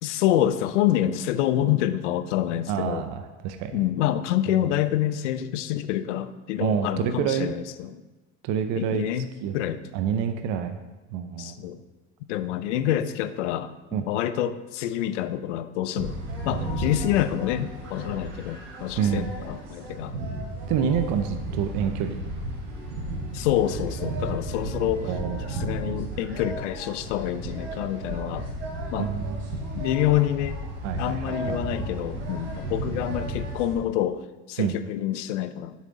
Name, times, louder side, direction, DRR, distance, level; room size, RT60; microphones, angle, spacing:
voice 1, 0.0-3.0 3.7-8.0 8.8-9.8 11.4-11.8 12.3-16.2 16.4-20.2 20.9-21.0 23.3-25.1 25.5-28.5 28.9-29.1 29.7-30.6 31.0-34.2 34.5-35.7, left 12 dB, 80° left, 13 dB, 0.6 m, -27 dB
voice 2, 2.7-3.8 4.5-4.6 6.6-7.6 8.4-9.0 9.4-9.5 9.9-10.8 11.1-11.6 13.9-14.0 19.0-19.3 20.7-22.2 25.0-25.5 29.0-29.6 30.8-31.6 34.6-34.7, right 8 dB, 55° right, 8 dB, 0.6 m, -27 dB
sound 1, 16.0-33.7, right 1 dB, 90° right, 2.8 m, -33 dB
7.4 x 6.8 x 3.7 m, 1.2 s
hypercardioid pair, 95°, 36 cm